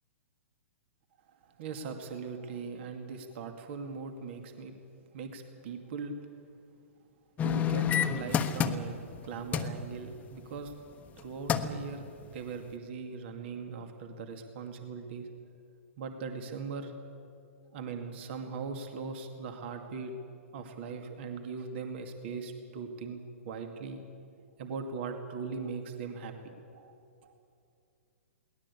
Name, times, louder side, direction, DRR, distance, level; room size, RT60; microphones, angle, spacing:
voice 1, 1.3-4.7 5.1-6.1 7.4-9.0 9.2-10.7 11.2-12.1 12.3-15.3 16.0-16.9 17.7-20.1 20.5-24.0 24.6-26.9 27.2-27.3, right 5 dB, 50° right, 5 dB, 2.4 m, -40 dB
sound 1, 7.4-9.2 9.5-9.8 11.1-11.2 11.5-11.8 12.3-12.4, left 8 dB, 20° left, 1.1 m, -28 dB
22.0 x 18.5 x 8.5 m, 2.5 s
hypercardioid pair, 125°, 8 cm